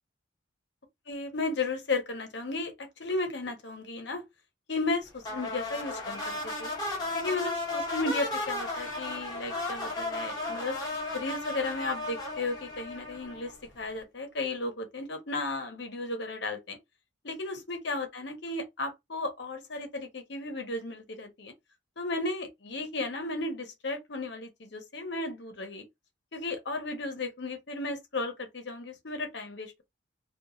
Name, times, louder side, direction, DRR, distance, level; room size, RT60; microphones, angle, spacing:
voice 1, 1.1-4.2 4.7-6.7 7.1-10.8 11.1-16.8 17.2-21.5 22.0-25.8 26.3-29.8, left 2 dB, 60° left, 0.8 m, -34 dB
sound 1, 5.2-13.7, left 2 dB, 20° left, 0.8 m, -35 dB
2.9 x 2.3 x 2.5 m
head